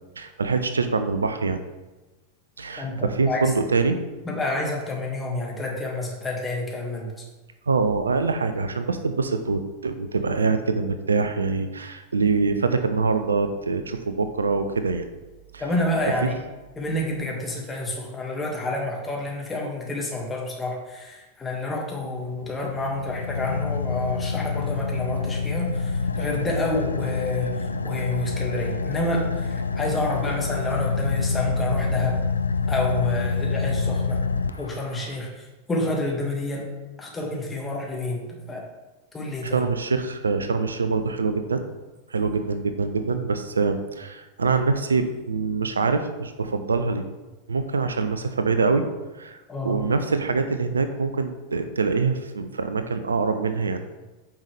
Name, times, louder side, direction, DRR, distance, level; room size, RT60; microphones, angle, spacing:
voice 1, 0.2-1.6 2.6-4.0 7.7-15.0 15.5-15.7 16.2-16.3 39.4-41.6 42.1-47.0 47.5-48.8 49.2-53.8, right 4 dB, 75° right, 9 dB, 0.5 m, -24 dB
voice 2, 2.8-3.4 4.2-7.1 15.6-16.4 16.8-32.2 32.7-34.2 34.6-36.6 37.0-38.6 39.1-39.6 49.5-49.9, left 2 dB, 15° left, -1 dB, 1.9 m, -29 dB
Car / Idling, 22.2-35.2, left 4 dB, 80° left, 0.3 m, -27 dB
8.9 x 5.7 x 3.4 m, 1.1 s
figure-of-eight pair, 90°, 0 cm